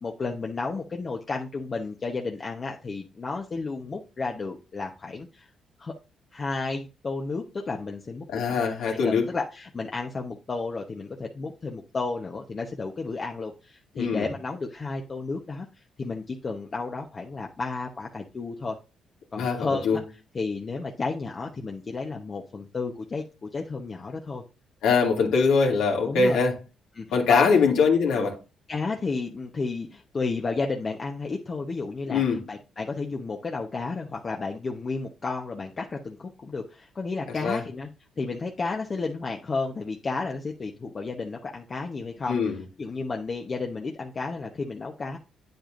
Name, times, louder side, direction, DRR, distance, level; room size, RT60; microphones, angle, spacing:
voice 1, 0.0-5.5 5.8-5.9 6.3-15.7 16.0-18.8 19.3-20.0 20.3-24.4 26.0-26.4 26.9-27.5 28.7-37.9 38.2-42.4 42.8-45.2, left 4 dB, 35° left, 1.0 m, -32 dB
voice 2, 8.3-9.3 14.0-14.3 19.4-20.0 24.8-26.6 27.1-28.4 32.1-32.4 37.4-37.6 42.3-42.6, left 5 dB, 85° left, 2.5 m, -22 dB
8.7 x 8.0 x 2.6 m
cardioid pair, 90°, 0 cm